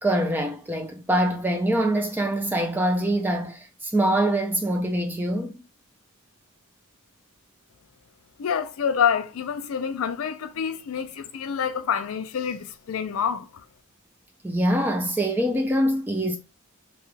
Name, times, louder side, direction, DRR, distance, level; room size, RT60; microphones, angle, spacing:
voice 1, 0.0-5.5 14.4-16.4, right 1 dB, 10° right, 0.4 m, -24 dB
voice 2, 8.4-13.5, left 7 dB, 75° left, 0.4 m, -27 dB
2.8 x 2.2 x 3.1 m
head